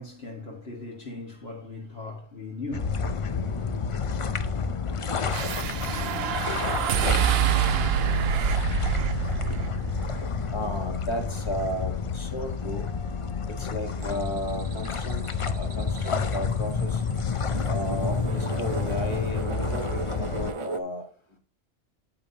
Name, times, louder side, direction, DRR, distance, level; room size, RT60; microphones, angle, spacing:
voice 1, 0.0-3.0, left 3 dB, 60° left, 1.9 m, -38 dB
sound 1, 2.7-20.5, left 5 dB, 40° left, 0.4 m, -30 dB
sound 2, 5.3-11.7, right 9 dB, 65° right, 0.8 m, -27 dB
voice 2, 10.5-12.9 13.5-17.0 17.7-21.1, equal, 25° left, 1.4 m, -34 dB
sound 3, 14.0-20.8, right 4 dB, 40° right, 0.5 m, -38 dB
8.5 x 8.5 x 2.8 m
omnidirectional pair, 1.2 m